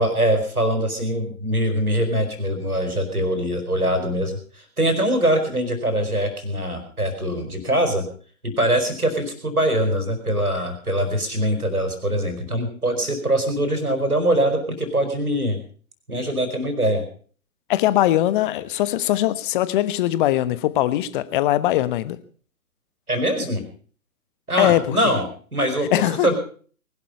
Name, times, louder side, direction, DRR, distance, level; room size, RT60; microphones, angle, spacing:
voice 1, 0.0-8.0 8.4-15.6 16.1-17.0 23.1-23.6 24.5-25.3 25.5-26.3, right 1 dB, 90° right, 8 dB, 4.7 m, -23 dB
voice 2, 17.7-22.2 24.6-25.0 25.9-26.3, left 14 dB, 35° left, 14 dB, 1.3 m, -21 dB
20.5 x 12.0 x 5.5 m, 0.43 s
figure-of-eight pair, 120°, 43 cm